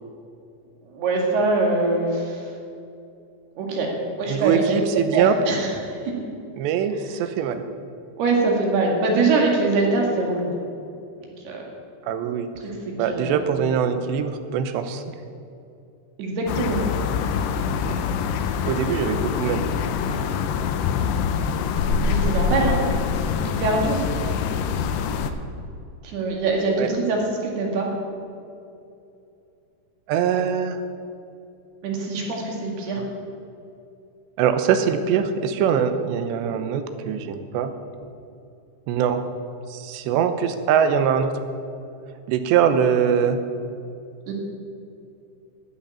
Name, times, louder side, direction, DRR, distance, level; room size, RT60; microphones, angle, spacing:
voice 1, 0.9-2.4 3.6-3.9 4.2-5.7 8.2-10.6 11.5-11.6 12.6-12.8 13.1-13.5 16.2-16.8 22.0-22.8 23.5-24.0 26.0-27.9 31.8-33.0 44.3-44.4, right 3 dB, 70° right, 0 dB, 3.9 m, -23 dB
voice 2, 4.3-5.3 6.6-7.7 12.0-12.5 13.0-15.1 18.6-19.6 26.8-26.9 30.1-30.8 33.0-33.1 34.4-37.7 38.9-39.2 39.7-41.3 42.3-43.4, right 8 dB, 85° right, 9 dB, 3.1 m, -22 dB
sound 1, 16.5-25.3, left 6 dB, 80° left, 2.8 m, -24 dB
12.5 x 7.8 x 10.0 m, 2.6 s
omnidirectional pair, 4.9 m